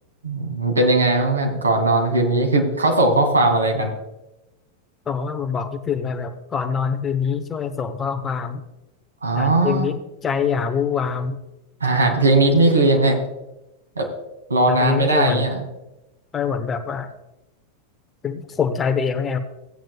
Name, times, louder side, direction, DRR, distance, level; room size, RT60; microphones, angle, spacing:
voice 1, 0.2-3.9 9.2-9.9 11.8-13.2 14.0-14.1 14.5-15.6, right 2 dB, 75° right, 2 dB, 2.3 m, -18 dB
voice 2, 5.1-8.6 9.3-11.4 14.7-15.5 16.3-17.1 18.2-19.4, left 6 dB, 20° left, 8 dB, 1.0 m, -24 dB
16.5 x 9.2 x 2.4 m, 0.95 s
figure-of-eight pair, 90°, 0 cm